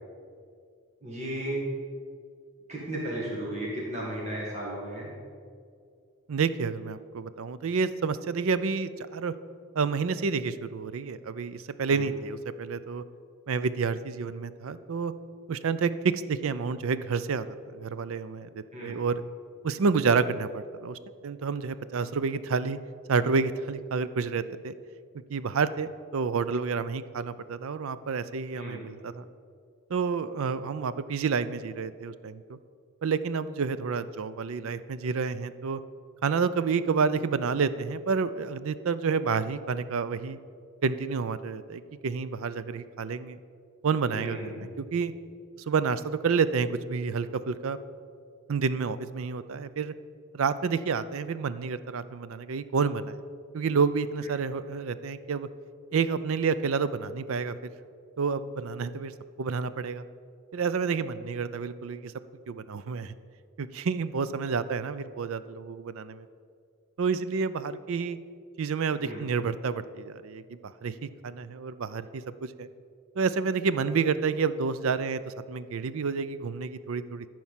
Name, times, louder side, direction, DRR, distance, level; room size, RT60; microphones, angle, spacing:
voice 1, 1.0-1.6 2.7-5.1 11.9-12.0 18.7-19.0 28.5-28.8 44.1-44.7 69.0-69.2, right 1 dB, 30° right, -5 dB, 1.9 m, -35 dB
voice 2, 6.3-9.3 9.7-13.0 13.5-15.1 15.5-17.5 17.7-19.2 19.6-22.8 23.1-24.7 25.3-29.2 29.9-32.6 33.0-35.8 36.2-40.4 40.8-43.4 43.8-45.1 45.7-47.8 48.5-49.9 50.3-53.2 53.5-55.5 55.9-57.5 58.2-59.1 59.4-60.1 60.5-62.1 62.5-63.1 63.6-66.3 67.0-68.2 68.6-72.7 73.2-77.3, right 5 dB, 65° right, 14 dB, 0.4 m, -29 dB
13.5 x 4.6 x 7.4 m, 2.2 s
head